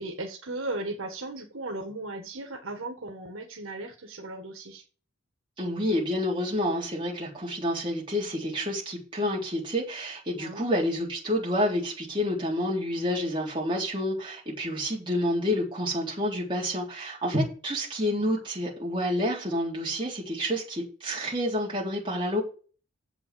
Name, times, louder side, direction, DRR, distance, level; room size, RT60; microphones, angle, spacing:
voice 1, 0.0-4.8 10.3-10.7 18.2-18.3, right 2 dB, 80° right, 1.8 m, -36 dB
voice 2, 5.6-22.4, equal, 25° right, 3.7 m, -29 dB
7.8 x 5.8 x 7.7 m
head